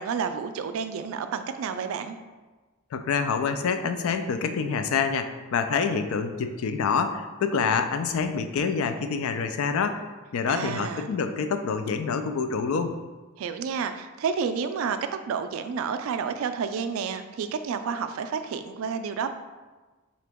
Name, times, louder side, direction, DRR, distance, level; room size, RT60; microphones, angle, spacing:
voice 1, 0.0-2.2 10.5-11.1 13.4-15.0 15.3-19.3, right 6 dB, 75° right, 9 dB, 0.3 m, -30 dB
voice 2, 2.9-10.0 10.3-13.0, left 5 dB, 75° left, 8 dB, 0.3 m, -27 dB
3.7 x 2.9 x 3.5 m, 1.2 s
head